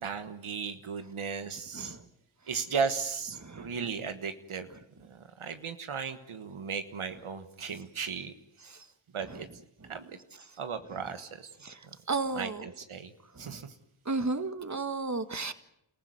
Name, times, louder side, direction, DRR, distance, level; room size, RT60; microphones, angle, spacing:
voice 1, 0.0-2.0 2.5-4.7 5.1-8.3 9.1-9.5 9.9-10.2 10.6-11.5 12.3-13.1 13.4-13.7, right 5 dB, 90° right, 9 dB, 1.4 m, -36 dB
voice 2, 3.4-3.7 8.6-8.9 9.3-9.4 11.6-11.8 12.1-12.7 13.4-13.6 14.1-15.5, right 3 dB, 35° right, 10 dB, 1.8 m, -34 dB
29.0 x 15.0 x 9.5 m, 0.80 s
cardioid pair, 45°, 49 cm